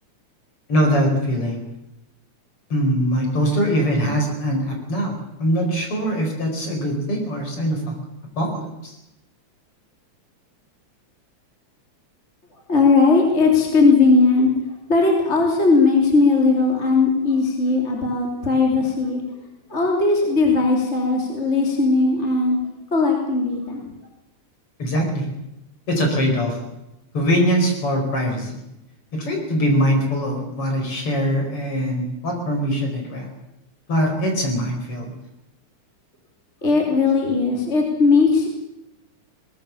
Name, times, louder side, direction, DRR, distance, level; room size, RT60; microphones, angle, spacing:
voice 1, 0.7-1.6 2.7-8.0 8.4-8.9 24.8-25.3 25.9-26.6 27.1-28.6 29.1-33.3 33.9-35.1, equal, 45° left, 2 dB, 5.6 m, -22 dB
voice 2, 12.7-14.5 14.9-19.2 19.7-22.6 22.9-23.8 36.6-38.5, left 3 dB, 20° left, 0 dB, 3.3 m, -18 dB
21.5 x 19.5 x 7.1 m, 0.88 s
omnidirectional pair, 3.5 m